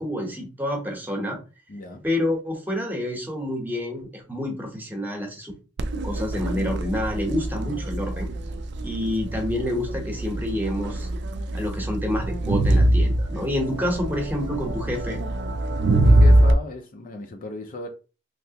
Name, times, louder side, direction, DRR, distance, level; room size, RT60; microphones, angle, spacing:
voice 1, 0.0-1.4 2.0-5.5 6.0-8.3 8.8-11.1 11.5-15.2, left 1 dB, 10° right, 0.9 m, -28 dB
voice 2, 1.7-2.0 15.9-17.9, left 2 dB, 45° left, 0.5 m, -36 dB
Crowd, 5.8-16.5, right 1 dB, 65° right, 0.4 m, -23 dB
3.2 x 2.9 x 2.8 m
head